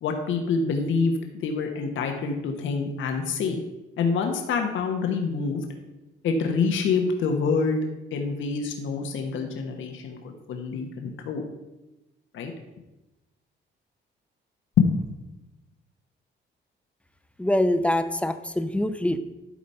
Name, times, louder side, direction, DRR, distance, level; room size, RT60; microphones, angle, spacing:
voice 1, 0.0-3.6 4.0-5.6 6.2-11.4 12.3-12.5 14.8-15.0, left 5 dB, 80° left, 4 dB, 1.1 m, -26 dB
voice 2, 17.4-19.2, left 1 dB, 5° left, 10 dB, 0.6 m, -24 dB
11.5 x 4.2 x 5.5 m, 1.0 s
cardioid pair, 90°, 20 cm